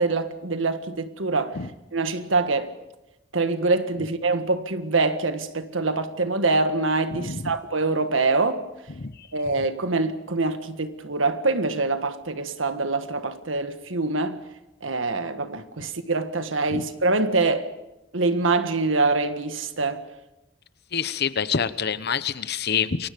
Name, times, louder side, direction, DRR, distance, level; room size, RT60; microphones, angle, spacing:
voice 1, 0.0-1.6 1.9-2.7 3.3-8.6 9.3-14.4 14.8-17.7 18.1-20.0, right 3 dB, 85° right, 1.7 m, -24 dB
voice 2, 7.1-7.5 9.0-9.1 16.7-16.9 20.9-23.1, left 6 dB, 60° left, 1.0 m, -27 dB
28.5 x 23.5 x 5.2 m
head